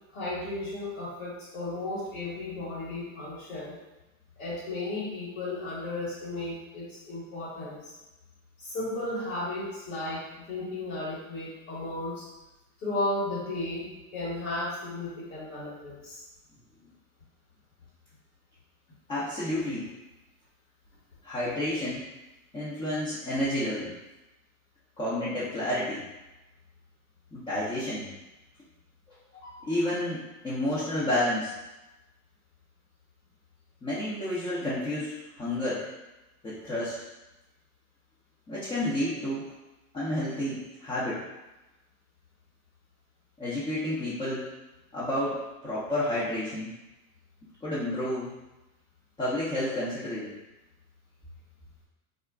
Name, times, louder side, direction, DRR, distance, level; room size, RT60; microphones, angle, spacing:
voice 1, 0.1-3.8 4.4-7.9 8.6-12.3 12.8-16.2, left 2 dB, 75° left, -8 dB, 1.3 m, -34 dB
voice 2, 19.1-19.9 21.2-22.1 22.5-23.9 25.0-26.0 27.3-28.1 29.1-29.2 29.4-31.5 33.8-35.9 36.4-37.0 38.5-39.4 39.9-41.2 43.4-44.5 44.9-46.7 47.6-48.3 49.2-50.3, left 1 dB, 10° left, -10 dB, 0.6 m, -30 dB
2.4 x 2.1 x 3.5 m, 1.0 s
hypercardioid pair, 115°, 42 cm